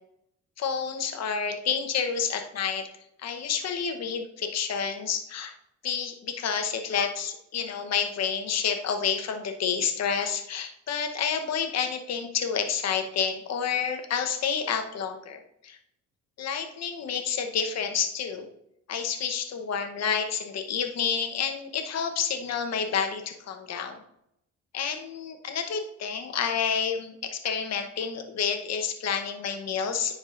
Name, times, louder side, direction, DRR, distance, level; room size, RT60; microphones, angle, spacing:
voice 1, 0.6-2.9 3.2-5.5 5.8-15.8 16.4-18.5 18.9-24.0 24.7-30.2, left 7 dB, 60° left, 5 dB, 1.0 m, -29 dB
9.9 x 4.8 x 2.5 m, 0.75 s
cardioid pair, 90°, 30 cm